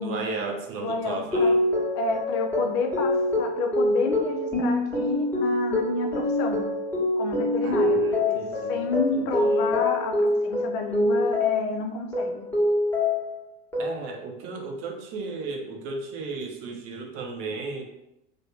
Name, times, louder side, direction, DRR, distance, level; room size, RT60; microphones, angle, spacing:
voice 1, 0.0-1.6 7.6-9.8 13.8-17.9, right 3 dB, 45° right, 3 dB, 0.7 m, -35 dB
voice 2, 0.8-1.6 1.9-6.6 7.2-12.5, left 4 dB, 45° left, 6 dB, 0.4 m, -30 dB
sound 1, 1.3-11.8 12.1-13.4 13.7-14.3, left 1 dB, 5° left, 1.2 m, -25 dB
3.3 x 2.0 x 3.3 m, 0.88 s
hypercardioid pair, 85°, 32 cm